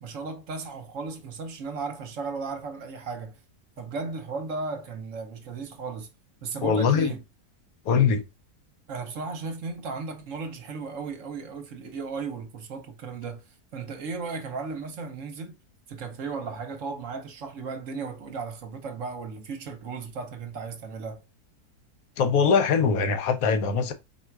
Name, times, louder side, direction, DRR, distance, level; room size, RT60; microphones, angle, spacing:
voice 1, 0.0-3.4 3.8-6.1 6.4-7.2 8.9-15.6 15.9-21.2, right 4 dB, 60° right, 1.1 m, -35 dB
voice 2, 6.6-7.1 7.9-8.2 22.2-23.9, left 6 dB, 70° left, 1.1 m, -22 dB
4.3 x 2.4 x 4.5 m
omnidirectional pair, 1.7 m